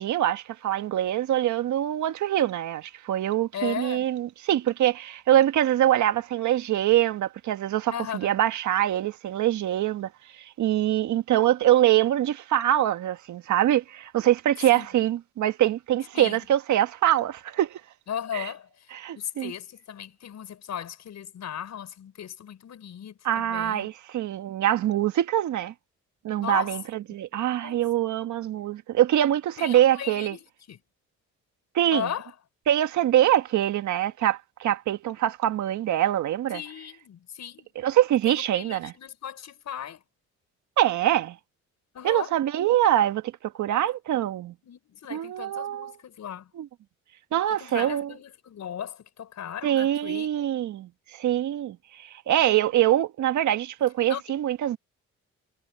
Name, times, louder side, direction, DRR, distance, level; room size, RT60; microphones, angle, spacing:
voice 1, 0.0-17.8 18.3-18.5 18.9-19.5 23.2-25.7 26.2-30.4 31.7-32.1 32.7-36.6 37.7-38.9 40.8-41.4 42.0-44.5 45.1-45.9 46.5-46.7 47.3-48.1 49.6-54.8, right 12 dB, 75° right, 1.6 m, -24 dB
voice 2, 3.5-4.1 7.9-8.4 14.7-14.9 16.1-16.5 18.1-18.9 19.2-23.9 26.4-26.8 27.6-27.8 29.6-30.4 30.7-30.8 31.9-32.3 36.5-37.7 38.3-40.0 41.9-42.3 43.7-43.8 44.6-46.5 47.6-50.3 54.1-54.2, left 9 dB, 65° left, 7.0 m, -36 dB
cardioid pair, 90°, 30 cm